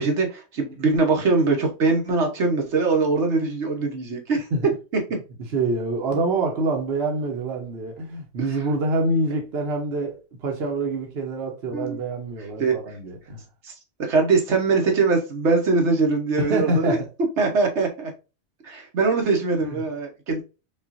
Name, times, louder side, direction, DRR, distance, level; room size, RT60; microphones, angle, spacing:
voice 1, 0.0-4.5 11.7-12.0 12.6-12.7 13.6-13.7 14.1-17.0 17.4-18.1 18.6-20.4, right 4 dB, 85° right, 1.3 m, -22 dB
voice 2, 5.5-13.4 16.4-17.1 19.6-19.8, right 2 dB, 65° right, 1.1 m, -26 dB
5.4 x 2.5 x 2.5 m
omnidirectional pair, 1.1 m